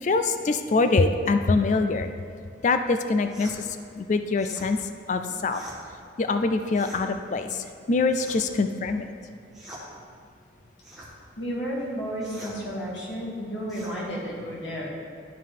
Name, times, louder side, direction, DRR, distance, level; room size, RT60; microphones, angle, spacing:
voice 1, 0.0-2.1 2.6-4.8 5.1-5.6 6.2-9.1, left 3 dB, 40° left, 8 dB, 0.3 m, -24 dB
sound 1, 3.3-3.6 4.4-4.7 5.5-5.8 6.7-7.0 8.1-8.5 9.5-9.9 10.8-11.1 12.2-12.6 13.7-14.0, right 1 dB, ahead, 1.3 m, -43 dB
voice 2, 11.4-14.9, equal, 70° left, -4 dB, 1.8 m, -32 dB
11.5 x 4.6 x 3.7 m, 2.3 s
head